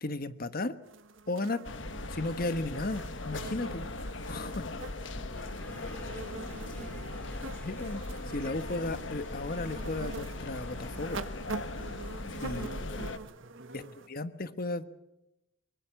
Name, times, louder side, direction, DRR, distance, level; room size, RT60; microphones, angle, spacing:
voice 1, 0.0-0.7 1.3-1.6 2.1-3.9 4.2-4.7 7.6-11.2 12.4-12.7 13.0-13.1 13.7-14.8, left 2 dB, 50° left, 12 dB, 1.3 m, -35 dB
sound 1, 0.8-14.1, right 3 dB, 80° right, 1.6 m, -45 dB
sound 2, 1.6-13.2, left 2 dB, 70° left, 1.4 m, -39 dB
sound 3, 5.3-11.1, left 1 dB, 10° left, 6.1 m, -54 dB
voice 2, 5.3-7.3 12.4-14.0, right 1 dB, 60° right, 0 dB, 7.0 m, -51 dB
24.0 x 23.0 x 7.2 m, 0.90 s
head